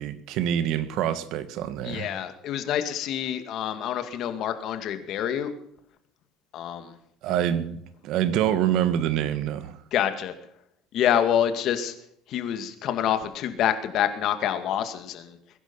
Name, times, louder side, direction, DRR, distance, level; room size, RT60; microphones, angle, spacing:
voice 1, 0.0-2.1 7.2-9.8, right 10 dB, 65° right, 1.6 m, -26 dB
voice 2, 1.8-5.5 6.5-6.9 9.9-10.3 10.9-11.9 12.3-15.4, left 10 dB, 55° left, 2.2 m, -27 dB
21.5 x 11.0 x 5.6 m
cardioid pair, 130°, 0 cm